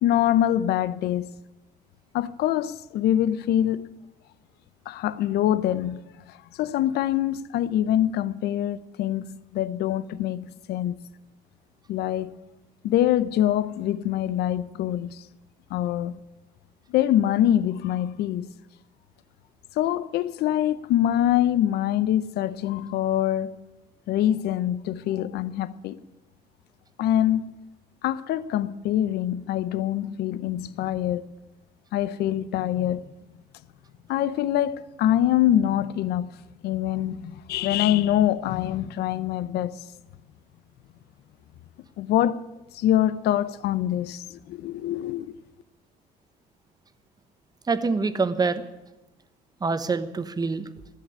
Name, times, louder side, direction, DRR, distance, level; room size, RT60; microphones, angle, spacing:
voice 1, 0.0-1.3 2.1-3.8 4.9-6.0 6.3-11.0 11.9-12.4 12.8-15.2 15.7-16.2 16.9-18.5 19.8-23.6 24.1-26.0 27.0-27.5 28.0-31.3 31.9-33.0 34.1-36.3 36.6-39.7 42.0-42.4 42.7-45.3, left 12 dB, 75° left, 0.7 m, -24 dB
voice 2, 47.7-48.6 49.6-50.7, right 4 dB, 25° right, 1.0 m, -25 dB
15.5 x 7.4 x 9.9 m
cardioid pair, 110°, 17 cm